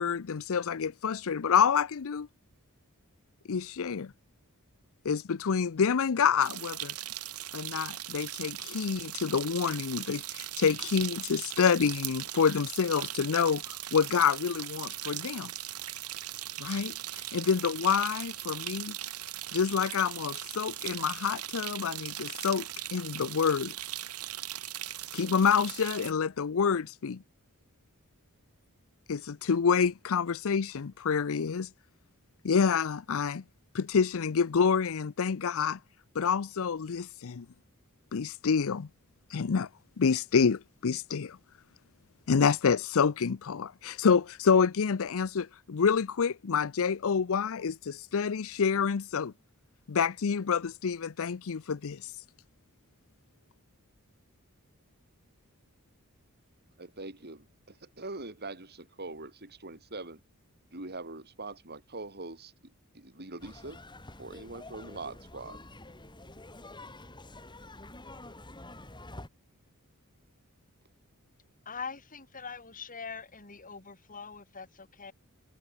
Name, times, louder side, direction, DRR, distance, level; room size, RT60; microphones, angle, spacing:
voice 1, 0.0-2.3 3.5-4.1 5.0-6.9 7.5-15.5 16.6-17.0 17.3-18.9 19.5-23.7 25.1-27.2 29.1-31.7 32.4-33.4 33.7-35.8 36.1-37.5 38.1-38.9 39.3-39.7 40.0-41.4 42.3-49.3 49.9-52.0, left 6 dB, 65° left, 0.5 m, -27 dB
sound 1, 6.4-26.1, right 13 dB, 90° right, 7.9 m, -39 dB
voice 2, 56.8-60.2 60.7-63.8 64.2-65.6, right 2 dB, 45° right, 6.3 m, -43 dB
sound 2, 63.4-69.3, left 2 dB, 20° left, 4.5 m, -48 dB
voice 3, 71.7-75.1, left 5 dB, 40° left, 4.1 m, -42 dB
head